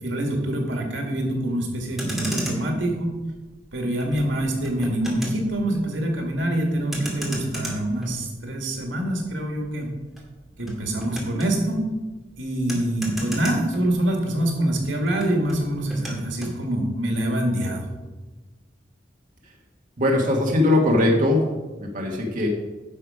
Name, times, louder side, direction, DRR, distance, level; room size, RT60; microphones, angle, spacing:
voice 1, 0.0-3.1 3.7-9.9 10.6-11.8 12.4-17.9, right 1 dB, 90° right, 2 dB, 2.1 m, -25 dB
Motor vehicle (road), 1.8-14.4 14.7-16.6, right 1 dB, ahead, 2.1 m, -35 dB
voice 2, 20.0-21.4 21.8-22.5, left 1 dB, 45° right, 0 dB, 1.3 m, -20 dB
10.0 x 6.6 x 5.0 m, 1.2 s
head